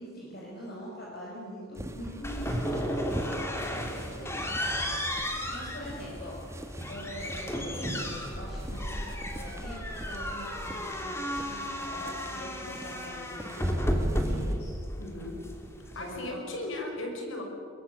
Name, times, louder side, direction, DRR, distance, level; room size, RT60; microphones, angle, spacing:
voice 1, 0.0-4.5 5.5-6.4 6.9-14.7 15.9-16.4, equal, 50° left, -4 dB, 5.3 m, -43 dB
sound 1, 1.7-14.5, right 1 dB, 15° right, 1.5 m, -44 dB
sound 2, 2.2-16.3, equal, 15° left, 2.7 m, -33 dB
voice 2, 15.0-15.4 15.9-17.4, left 2 dB, 70° left, 3 dB, 5.5 m, -36 dB
23.5 x 22.0 x 8.4 m, 2.4 s
head